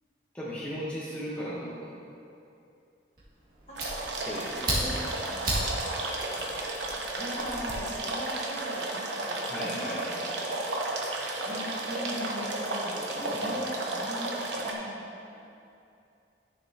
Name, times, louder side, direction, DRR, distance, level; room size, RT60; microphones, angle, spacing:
voice 1, 0.3-2.0 4.2-5.0 9.5-10.5 13.3-13.6, equal, 5° left, -9 dB, 1.1 m, -37 dB
Fire, 3.2-7.8, right 1 dB, 50° right, 2.0 m, -35 dB
sound 1, 3.8-14.7, right 2 dB, 65° right, 0.9 m, -33 dB
voice 2, 4.5-5.0 5.3-5.8 7.2-10.0 11.3-14.4 14.6-15.0, equal, 35° left, -6 dB, 1.7 m, -40 dB
12.0 x 6.8 x 2.9 m, 2.6 s
head